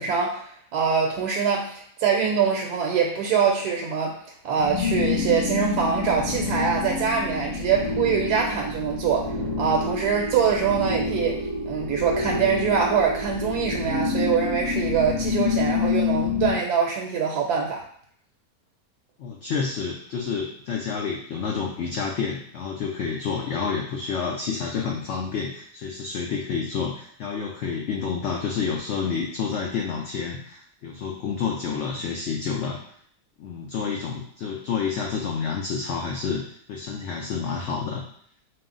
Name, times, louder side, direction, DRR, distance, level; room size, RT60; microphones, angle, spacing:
voice 1, 0.0-4.2 4.4-11.4 11.6-17.9, right 6 dB, 75° right, 0 dB, 1.1 m, -24 dB
sound 1, 4.5-16.6, left 4 dB, 50° left, 2.1 m, -28 dB
voice 2, 19.2-32.8 33.4-36.4 36.7-38.0, left 5 dB, 65° left, 0 dB, 0.7 m, -29 dB
4.7 x 2.1 x 3.7 m, 0.62 s
omnidirectional pair, 1.7 m